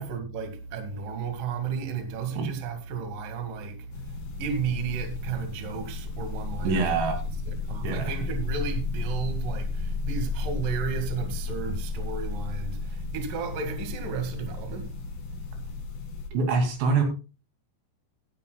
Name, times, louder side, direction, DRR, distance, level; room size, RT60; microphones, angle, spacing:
voice 1, 0.0-7.2 7.6-15.0 15.5-15.7, right 5 dB, 55° right, 3.3 m, -33 dB
sound 1, 3.9-16.3, left 4 dB, 70° left, 4.2 m, -33 dB
voice 2, 6.6-7.1 7.8-8.1 16.3-17.0, right 4 dB, 80° right, 4.8 m, -25 dB
18.0 x 10.5 x 2.3 m
omnidirectional pair, 5.2 m